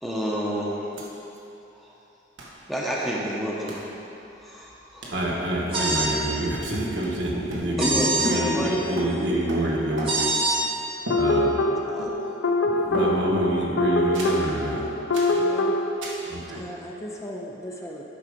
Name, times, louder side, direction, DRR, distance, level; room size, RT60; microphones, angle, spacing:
voice 1, 0.0-0.9 1.7-1.9 2.7-3.8 4.4-5.1 7.8-9.2 11.9-12.1, equal, ahead, -5 dB, 1.0 m, -29 dB
sound 1, 1.0-1.1 1.3-1.4 2.4-2.6 3.7-3.9 5.0-5.3 5.9-6.3 6.5-8.0 8.2-10.4 11.1-11.7 12.0-12.4 12.9-13.5 14.1-14.5 15.1-15.4 16.0-16.3, right 1 dB, 90° right, 1.4 m, -36 dB
voice 2, 5.1-10.3 11.1-11.5 12.6-14.9 15.3-15.4 16.3-16.6, right 1 dB, 65° right, -3 dB, 1.6 m, -27 dB
sound 2, 5.7-6.1 7.8-8.3 10.0-10.6, right 3 dB, 30° right, 1.3 m, -24 dB
sound 3, 11.1-15.9, left 2 dB, 70° left, 0.5 m, -24 dB
voice 3, 14.2-15.0 15.2-15.8 16.5-18.0, equal, 15° left, -1 dB, 0.6 m, -38 dB
11.5 x 5.0 x 5.1 m, 2.9 s
head